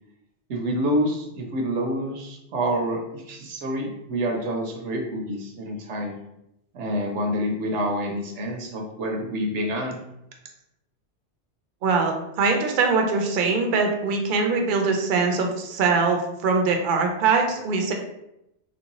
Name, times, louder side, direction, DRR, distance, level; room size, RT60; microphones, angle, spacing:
voice 1, 0.5-6.1 6.7-10.0, equal, 85° right, 2 dB, 1.0 m, -27 dB
voice 2, 11.8-17.9, right 4 dB, 60° right, 3 dB, 0.6 m, -22 dB
3.0 x 2.6 x 2.9 m, 0.84 s
omnidirectional pair, 1.2 m